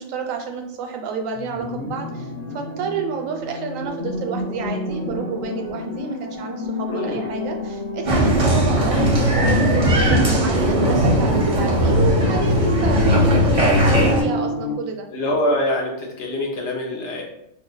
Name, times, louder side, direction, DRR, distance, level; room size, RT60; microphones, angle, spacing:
voice 1, 0.0-15.1, right 5 dB, 90° right, 4 dB, 1.0 m, -30 dB
sound 1, 1.3-14.8, left 1 dB, 40° left, 0.7 m, -30 dB
voice 2, 6.9-7.3 15.1-17.2, left 1 dB, 65° left, 0 dB, 1.0 m, -24 dB
Applause, 8.0-14.2, equal, 35° right, 0.6 m, -18 dB
2.7 x 2.2 x 3.8 m, 0.79 s
omnidirectional pair, 1.3 m